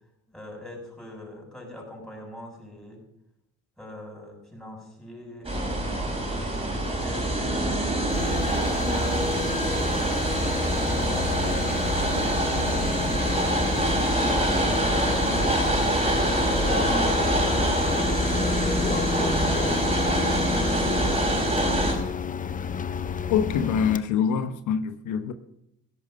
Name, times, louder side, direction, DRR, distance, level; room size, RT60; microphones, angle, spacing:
voice 1, 0.3-3.0 3.8-7.4 12.1-13.7 14.3-17.0 17.5-18.6, left 1 dB, ahead, 7.0 m, -43 dB
sound 1, 5.4-21.9, right 1 dB, 20° right, 5.1 m, -25 dB
sound 2, 8.1-24.0, left 6 dB, 25° left, 0.7 m, -31 dB
voice 2, 23.3-25.3, left 7 dB, 70° left, 1.2 m, -25 dB
16.5 x 11.5 x 5.3 m
cardioid pair, 105°, 31 cm